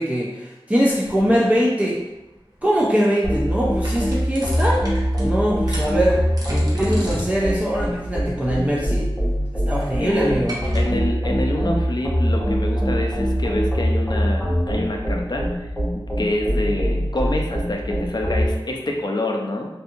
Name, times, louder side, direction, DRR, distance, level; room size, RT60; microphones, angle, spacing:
voice 1, 0.0-2.0 2.6-4.9 5.2-6.2 6.5-9.1 9.7-10.6, equal, 15° right, -5 dB, 0.4 m, -22 dB
sound 1, 0.9-10.8, right 1 dB, 45° right, 0.7 m, -39 dB
sound 2, 3.2-18.5, equal, 10° left, 0.9 m, -23 dB
voice 2, 10.0-10.4 10.7-15.5 16.2-19.7, left 1 dB, 50° left, 1 dB, 0.4 m, -26 dB
2.6 x 2.4 x 2.6 m, 0.96 s
wide cardioid pair, 55°, 9 cm